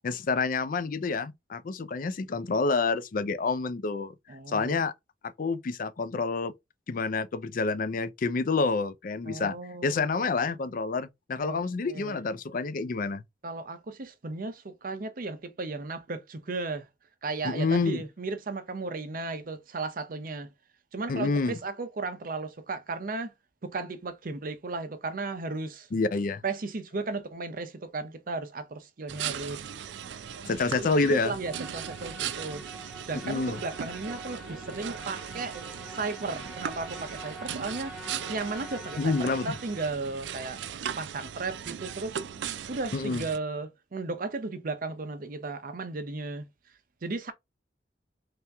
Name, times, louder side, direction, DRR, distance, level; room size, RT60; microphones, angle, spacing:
voice 1, 0.0-4.1 4.5-4.9 5.2-6.5 6.9-9.6 9.8-13.2 17.4-18.0 21.1-21.6 25.9-26.4 30.5-31.3 33.1-33.6 39.0-39.6 42.9-43.3, left 4 dB, 50° left, 0.4 m, -28 dB
voice 2, 4.3-4.8 9.3-10.2 11.4-11.6 11.9-12.2 13.4-16.9 17.2-20.5 20.9-23.3 23.6-25.9 26.4-29.6 30.8-32.6 33.1-35.6 35.9-37.9 38.3-40.6 41.0-42.2 42.7-46.5 47.0-47.3, right 3 dB, 50° right, 0.6 m, -35 dB
sound 1, 29.1-43.4, right 8 dB, 90° right, 0.4 m, -38 dB
Musical instrument, 31.4-39.9, right 1 dB, ahead, 1.0 m, -45 dB
3.3 x 2.9 x 3.4 m
head